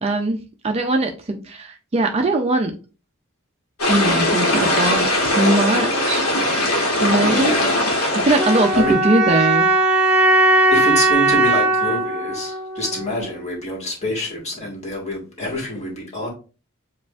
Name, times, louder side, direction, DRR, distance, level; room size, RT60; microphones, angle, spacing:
voice 1, 0.0-2.8 3.9-6.3 7.0-7.6 8.2-9.7, right 2 dB, 30° right, 0.4 m, -21 dB
sound 1, 3.8-9.0, left 1 dB, 85° left, 1.1 m, -20 dB
voice 2, 7.2-7.7 8.7-9.0 10.7-16.3, left 1 dB, 30° left, 1.5 m, -26 dB
sound 2, 8.4-13.4, right 2 dB, 5° right, 1.3 m, -18 dB
7.2 x 2.4 x 2.4 m
head